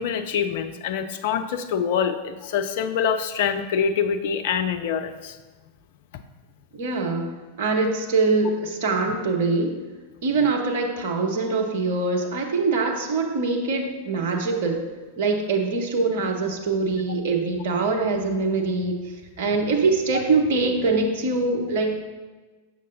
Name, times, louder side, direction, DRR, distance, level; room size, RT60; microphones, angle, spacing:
voice 1, 0.0-5.4, left 7 dB, 50° left, 8 dB, 0.4 m, -25 dB
voice 2, 6.7-7.3 7.6-9.8 10.2-14.8 15.2-19.0 19.4-22.0, right 3 dB, 55° right, 2 dB, 0.8 m, -23 dB
6.4 x 6.3 x 2.7 m, 1.3 s
figure-of-eight pair, 90°, 0 cm